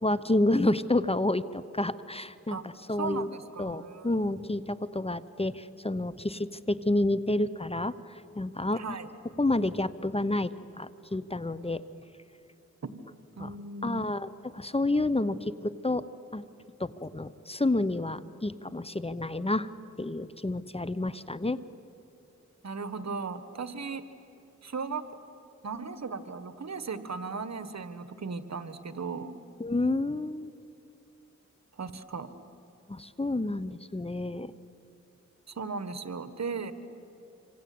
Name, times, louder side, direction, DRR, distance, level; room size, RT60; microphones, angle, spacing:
voice 1, 0.0-3.3 3.6-9.0 9.4-11.8 13.4-13.5 13.8-16.1 16.3-16.4 16.8-19.7 20.0-21.6 29.6-30.5 32.9-34.5, left 2 dB, 20° left, 15 dB, 0.9 m, -29 dB
voice 2, 3.0-4.2 8.7-9.1 12.8-12.9 13.4-14.0 22.6-24.0 24.6-25.0 25.6-29.3 31.8-32.3 35.5-36.7, right 4 dB, 65° right, 11 dB, 1.6 m, -36 dB
26.5 x 25.5 x 8.7 m, 2.7 s
cardioid pair, 50°, 29 cm